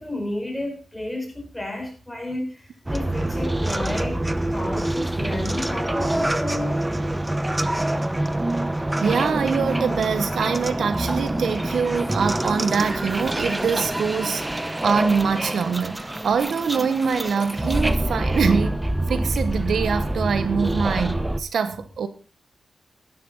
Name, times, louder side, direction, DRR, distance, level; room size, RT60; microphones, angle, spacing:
voice 1, 0.0-4.2 4.5-6.9, left 1 dB, 5° left, 5.1 m, -32 dB
sound 1, 2.9-21.4, right 1 dB, 15° right, 0.9 m, -26 dB
voice 2, 9.0-18.8 19.1-22.1, right 6 dB, 80° right, 1.0 m, -24 dB
12.0 x 11.0 x 3.9 m
cardioid pair, 75°, 0 cm